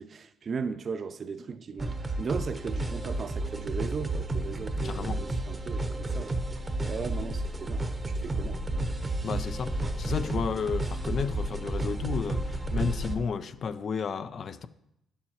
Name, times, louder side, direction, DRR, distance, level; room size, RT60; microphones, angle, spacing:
voice 1, 0.0-6.4 6.9-8.6, right 5 dB, 45° right, 0.4 m, -37 dB
sound 1, 1.8-13.2, right 2 dB, 20° right, 0.8 m, -31 dB
voice 2, 4.8-5.3 9.2-14.7, left 6 dB, 55° left, 0.4 m, -32 dB
10.5 x 7.1 x 2.9 m
cardioid pair, 90°, 0 cm